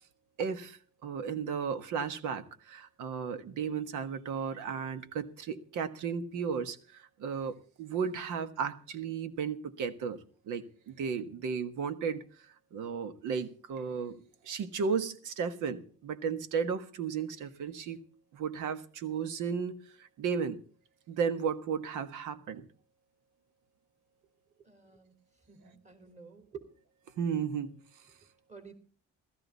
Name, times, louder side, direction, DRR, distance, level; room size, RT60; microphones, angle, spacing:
voice 1, 0.4-10.2 10.5-12.2 12.7-18.0 18.3-20.6 21.1-22.6 27.2-27.8, right 6 dB, 90° right, 1.5 m, -34 dB
voice 2, 24.6-25.1 25.5-26.6 28.5-28.7, right 6 dB, 25° right, 4.0 m, -50 dB
16.0 x 14.0 x 4.1 m
cardioid pair, 90°, 30 cm